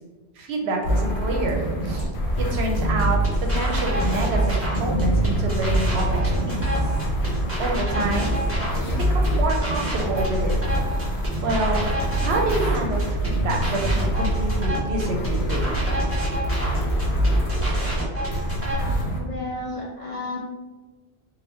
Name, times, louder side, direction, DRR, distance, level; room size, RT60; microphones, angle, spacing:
voice 1, 0.4-2.1 2.4-3.2 3.5-6.8 7.6-8.3 8.8-10.5 11.4-11.9 12.2-15.6, right 2 dB, 70° right, 1 dB, 0.8 m, -27 dB
sound 1, 0.8-19.2, right 1 dB, 70° left, 0.9 m, -25 dB
sound 2, 2.7-18.7, right 1 dB, 15° right, 0.8 m, -28 dB
voice 2, 19.2-20.4, left 2 dB, 55° left, -3 dB, 0.4 m, -32 dB
3.0 x 2.2 x 3.2 m, 1.2 s
omnidirectional pair, 1.2 m